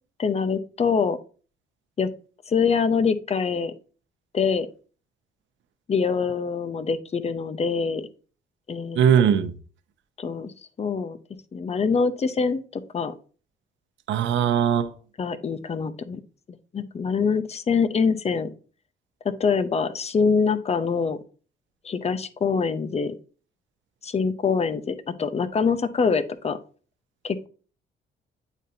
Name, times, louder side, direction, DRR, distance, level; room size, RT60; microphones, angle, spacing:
voice 1, 0.2-1.2 2.0-2.1 2.5-3.7 4.3-4.7 5.9-8.1 8.7-9.0 10.2-10.5 10.8-11.2 11.5-13.1 15.2-16.2 16.7-18.5 19.2-21.2 21.8-23.2 24.0-26.6 27.2-27.5, left 5 dB, 30° left, 12 dB, 0.7 m, -24 dB
voice 2, 8.9-9.5 14.1-14.9, right 8 dB, 75° right, 10 dB, 0.8 m, -19 dB
9.0 x 4.0 x 2.8 m, 0.38 s
cardioid pair, 90°, 20 cm